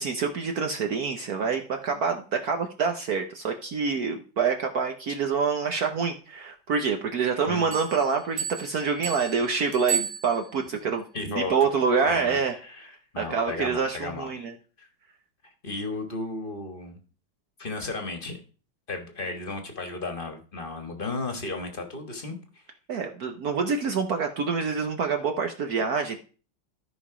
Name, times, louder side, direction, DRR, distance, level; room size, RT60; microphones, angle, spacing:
voice 1, 0.0-12.5 13.2-14.5 22.9-26.2, right 5 dB, 60° right, 5 dB, 1.2 m, -26 dB
sound 1, 7.7-10.7, right 7 dB, 80° right, 2.1 m, -34 dB
voice 2, 11.1-11.5 12.1-14.5 14.8-14.9 15.6-17.0 17.6-18.4 18.9-22.6, left 3 dB, 30° left, 5 dB, 1.3 m, -34 dB
13.0 x 5.2 x 4.9 m, 0.39 s
omnidirectional pair, 2.2 m